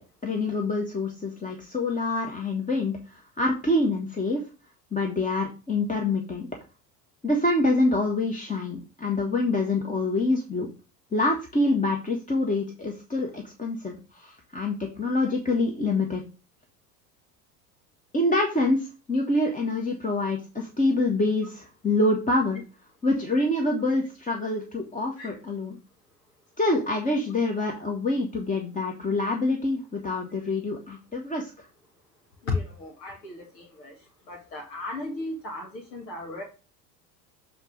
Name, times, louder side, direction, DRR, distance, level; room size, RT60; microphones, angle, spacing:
voice 1, 0.2-4.4 4.9-6.5 7.2-10.7 11.1-16.2 18.1-22.6 23.0-25.8 26.6-31.7, left 2 dB, 15° left, 1 dB, 1.6 m, -26 dB
voice 2, 32.4-36.4, left 3 dB, 75° left, 1 dB, 2.1 m, -35 dB
7.9 x 4.2 x 5.1 m, 0.32 s
hypercardioid pair, 75°, 50 cm